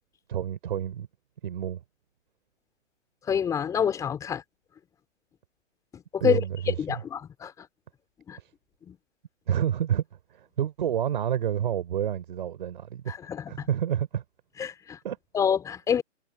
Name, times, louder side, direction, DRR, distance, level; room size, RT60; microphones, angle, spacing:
voice 1, 0.3-1.1 1.4-1.8 6.2-7.0 8.4-8.5 9.5-10.0 10.3-13.2 13.5-14.2 15.0-15.2, right 10 dB, 40° right, 4.7 m, -29 dB
voice 2, 3.3-4.4 6.1-6.4 6.8-7.7 8.3-8.4 8.9-9.0 13.1-13.7 14.6-15.0 15.3-16.0, left 7 dB, 10° left, 4.3 m, -27 dB
hypercardioid pair, 155°, 38 cm